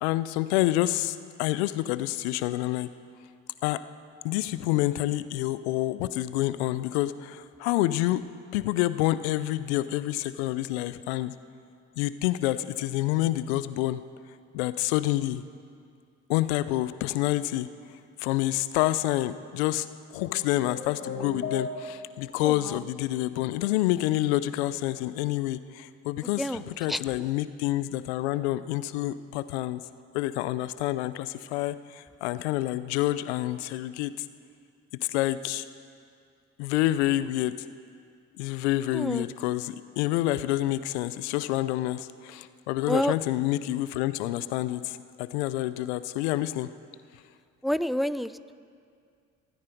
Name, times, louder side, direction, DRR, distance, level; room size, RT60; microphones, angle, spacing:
voice 1, 0.0-2.9 3.6-3.8 4.2-8.2 8.5-11.3 12.0-14.0 14.5-15.4 16.3-17.7 18.2-29.8 30.1-34.3 35.1-35.7 36.6-37.5 38.4-46.7, left 15 dB, 90° left, 14 dB, 0.5 m, -28 dB
sound 1, 20.3-22.3, left 4 dB, 40° left, 1.6 m, -36 dB
voice 2, 22.4-22.8 26.4-26.6 26.9-27.0 38.9-39.3 42.9-43.1 47.6-48.5, equal, ahead, 15 dB, 0.5 m, -28 dB
28.0 x 9.6 x 5.2 m, 2.3 s
hypercardioid pair, 50°, 33 cm